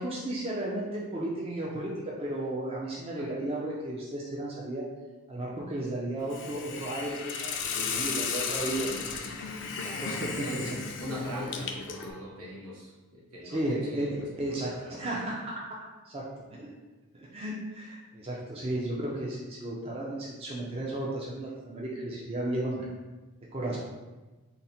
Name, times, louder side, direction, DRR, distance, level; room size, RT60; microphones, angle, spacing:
voice 1, 0.0-1.9 2.2-4.8 5.3-8.9 10.0-10.8 13.4-14.1 14.4-15.6 16.1-16.2 16.5-16.7 17.1-22.9 23.5-23.8, right 1 dB, 25° right, -4 dB, 0.5 m, -34 dB
Hiss, 6.3-12.1, left 5 dB, 55° left, 0.4 m, -34 dB
voice 2, 9.8-14.1 14.4-14.9, equal, 75° right, -5 dB, 1.1 m, -41 dB
3.9 x 2.1 x 4.2 m, 1.2 s
head